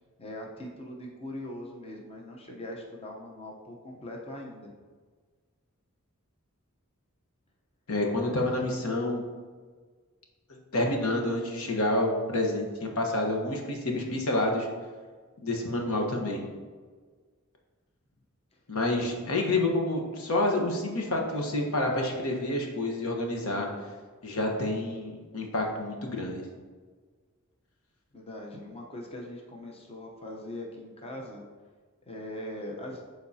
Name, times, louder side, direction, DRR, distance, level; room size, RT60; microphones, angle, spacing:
voice 1, 0.2-4.7 28.1-31.4 32.0-33.1, left 1 dB, 30° left, 0 dB, 0.8 m, -41 dB
voice 2, 7.9-9.2 10.7-14.7 15.4-16.4 18.7-23.7 24.2-26.4, left 1 dB, 80° left, 1 dB, 1.2 m, -28 dB
11.5 x 3.9 x 2.8 m, 1.5 s
head